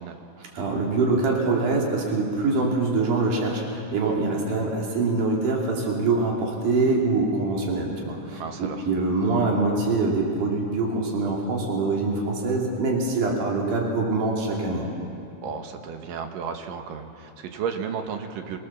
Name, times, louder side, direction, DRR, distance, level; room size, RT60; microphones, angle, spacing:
voice 1, 0.4-14.9, right 3 dB, 70° right, -1 dB, 4.1 m, -24 dB
voice 2, 8.4-8.9 15.4-18.6, right 6 dB, 85° right, 5 dB, 3.0 m, -33 dB
25.0 x 18.0 x 7.1 m, 2.6 s
omnidirectional pair, 3.8 m